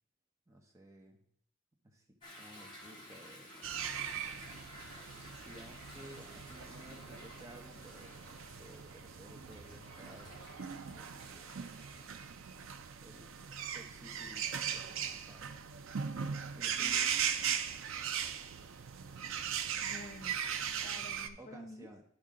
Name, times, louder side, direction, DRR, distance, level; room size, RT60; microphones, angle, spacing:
voice 1, 0.5-1.3 1.8-3.8 5.4-10.5 10.9-11.4 13.0-15.5 16.5-17.1 21.4-22.0, right 1 dB, 15° right, 1 dB, 1.0 m, -55 dB
Toilet flush / Drip / Trickle dribble, 2.2-12.3, equal, 20° left, 2.5 m, -54 dB
sound 1, 3.6-21.3, right 8 dB, 65° right, 0.5 m, -39 dB
voice 2, 16.7-17.6 19.1-19.2 19.8-20.6 20.8-21.9, left 1 dB, 40° left, 5 dB, 0.6 m, -51 dB
12.0 x 4.8 x 3.7 m, 0.71 s
head